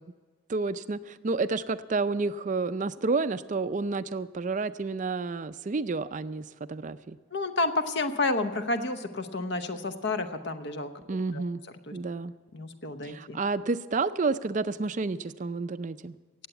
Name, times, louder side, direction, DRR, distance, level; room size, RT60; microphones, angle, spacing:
voice 1, 0.5-7.2 11.1-11.6 11.9-12.3 13.0-16.2, right 3 dB, 35° right, 13 dB, 0.4 m, -30 dB
voice 2, 7.3-10.9 11.3-11.4 11.9-12.0 12.5-13.4, left 2 dB, 55° left, 9 dB, 0.9 m, -30 dB
18.0 x 8.0 x 8.0 m, 1.4 s
head